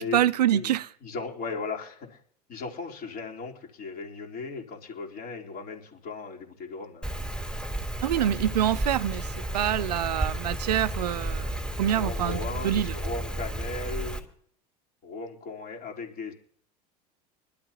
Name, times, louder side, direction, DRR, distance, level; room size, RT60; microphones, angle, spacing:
voice 1, 0.0-0.9 8.0-9.3 9.5-13.0, right 11 dB, 85° right, 0.6 m, -26 dB
voice 2, 1.0-2.2 2.5-7.1 9.8-9.9 11.9-14.2 15.0-16.3, left 4 dB, 45° left, 4.0 m, -37 dB
Rain, 7.0-14.2, right 1 dB, 5° left, 3.4 m, -32 dB
24.5 x 12.5 x 3.0 m
hypercardioid pair, 85°, 20 cm